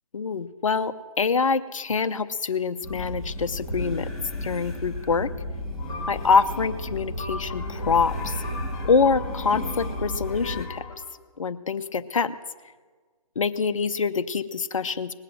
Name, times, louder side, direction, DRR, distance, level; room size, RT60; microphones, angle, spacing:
voice 1, 0.1-4.1 4.4-5.3 6.1-8.4 8.8-10.8 11.4-12.3 13.4-15.1, left 5 dB, 60° left, 11 dB, 0.7 m, -25 dB
sound 1, 2.8-10.7, left 1 dB, ahead, 1.6 m, -33 dB
sound 2, 5.8-11.0, left 4 dB, 30° left, 4.3 m, -39 dB
19.5 x 7.5 x 7.7 m, 1.5 s
figure-of-eight pair, 150°, 19 cm